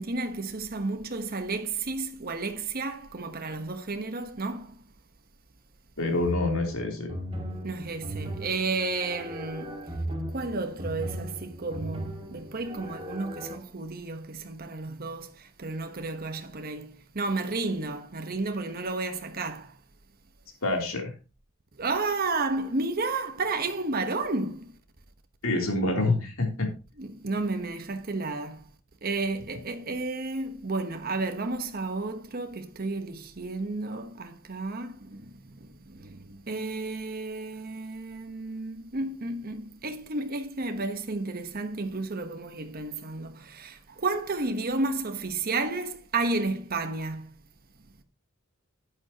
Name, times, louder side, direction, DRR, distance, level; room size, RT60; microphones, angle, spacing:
voice 1, 0.0-4.7 7.6-9.8 10.3-19.7 21.8-24.7 27.0-28.6 29.0-35.3 35.9-47.3, right 3 dB, 45° right, 1.1 m, -32 dB
voice 2, 6.0-7.1 20.6-21.1 25.4-26.7, left 2 dB, 85° left, 3.2 m, -27 dB
sound 1, 6.2-13.6, right 1 dB, 25° right, 1.8 m, -37 dB
11.5 x 8.9 x 2.9 m
head